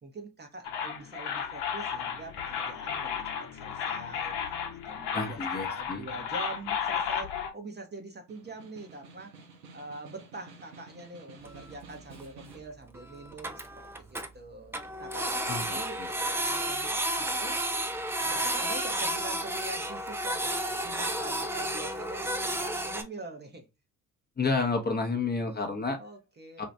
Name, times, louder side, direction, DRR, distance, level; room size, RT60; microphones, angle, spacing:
voice 1, 0.0-4.4 4.9-9.4 9.7-17.6 18.2-23.7 26.0-26.7, right 2 dB, 20° right, 0.7 m, -44 dB
sound 1, 0.6-7.5, left 7 dB, 60° left, 0.9 m, -34 dB
voice 2, 5.1-6.1 15.5-16.1 24.4-26.0 26.6-26.7, left 3 dB, 20° left, 0.8 m, -30 dB
Snare drum, 8.1-12.8, right 3 dB, 90° right, 0.7 m, -52 dB
Printer, 11.4-11.5 11.7-11.8 12.2-12.3 12.5-12.6 12.9-13.0 13.3-14.3 14.7-23.0, right 1 dB, 5° right, 0.4 m, -31 dB
2.7 x 2.3 x 3.2 m
hypercardioid pair, 55°, 46 cm